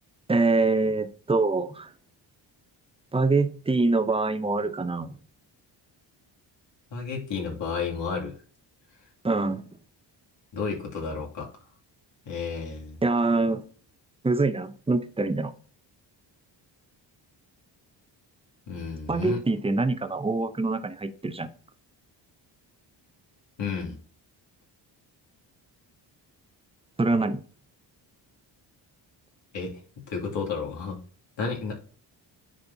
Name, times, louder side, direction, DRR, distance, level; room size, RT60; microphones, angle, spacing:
voice 1, 0.3-1.9 3.1-5.2 9.2-9.6 13.0-13.6 14.2-15.5 19.1-21.5 27.0-27.4, right 3 dB, 15° right, 0.6 m, -24 dB
voice 2, 6.9-8.3 10.5-11.5 12.3-13.0 18.7-19.4 23.6-24.0 29.5-31.0 31.4-31.7, left 5 dB, 70° left, 2.5 m, -32 dB
9.9 x 4.2 x 2.7 m
cardioid pair, 95°, 46 cm